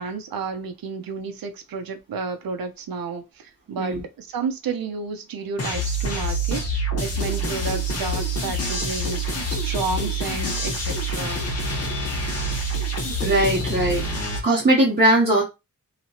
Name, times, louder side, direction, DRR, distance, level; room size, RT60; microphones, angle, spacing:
voice 1, 0.0-9.2 9.5-11.4, right 5 dB, 90° right, 0.6 m, -31 dB
sound 1, 5.6-14.4, right 1 dB, 45° left, 1.1 m, -26 dB
voice 2, 13.2-14.0 14.4-15.4, right 1 dB, 30° right, 0.9 m, -19 dB
2.9 x 2.9 x 2.8 m
wide cardioid pair, 165°, 34 cm